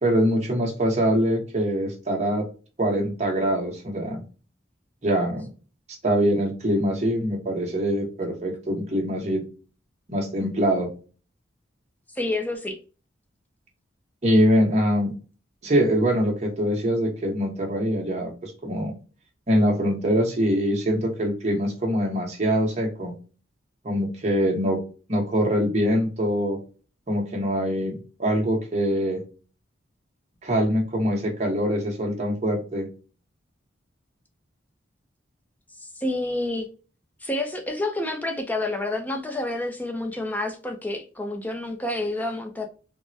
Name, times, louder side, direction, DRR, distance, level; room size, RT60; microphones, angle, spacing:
voice 1, 0.0-2.5 2.8-4.2 5.0-5.4 6.0-9.4 10.1-10.9 14.2-15.1 15.6-18.9 19.5-23.1 23.8-24.8 25.1-26.6 27.1-29.2 30.4-32.9, equal, 35° right, 0.9 m, -23 dB
voice 2, 12.1-12.8 35.8-36.7 37.2-42.7, left 2 dB, 10° left, 0.5 m, -29 dB
3.4 x 2.1 x 2.6 m
head